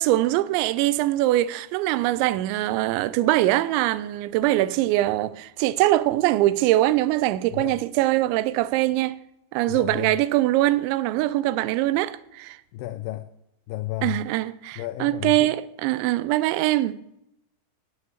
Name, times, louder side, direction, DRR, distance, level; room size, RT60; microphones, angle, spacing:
voice 1, 0.0-9.2 9.5-12.6 14.0-17.0, right 16 dB, 85° right, 2.9 m, -22 dB
voice 2, 9.7-10.2 12.7-13.3 13.7-14.2 14.8-15.5, left 16 dB, 90° left, 2.2 m, -32 dB
9.6 x 8.9 x 8.6 m
omnidirectional pair, 5.2 m